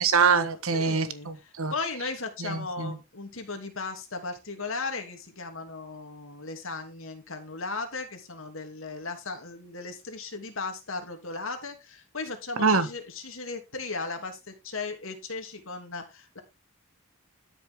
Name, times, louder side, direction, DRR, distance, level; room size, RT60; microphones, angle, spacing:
voice 1, 0.0-1.7 2.4-3.0 12.6-12.9, right 5 dB, 75° right, 1.5 m, -24 dB
voice 2, 0.7-1.3 1.7-16.4, left 3 dB, 65° left, 2.9 m, -36 dB
13.0 x 6.8 x 3.8 m
head